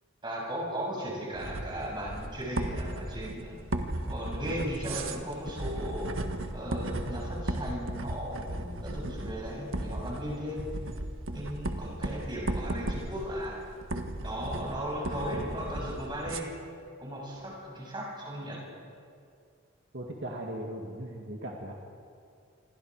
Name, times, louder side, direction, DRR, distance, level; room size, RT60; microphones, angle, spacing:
voice 1, 0.2-3.6 4.1-10.6 11.3-13.6 14.2-16.5 17.0-18.6, equal, 25° right, -3 dB, 7.1 m, -36 dB
sound 1, 1.3-16.4, right 1 dB, 80° right, 1.6 m, -36 dB
voice 2, 19.9-21.7, right 1 dB, 60° right, -1 dB, 2.1 m, -38 dB
28.0 x 23.0 x 4.9 m, 2.3 s
head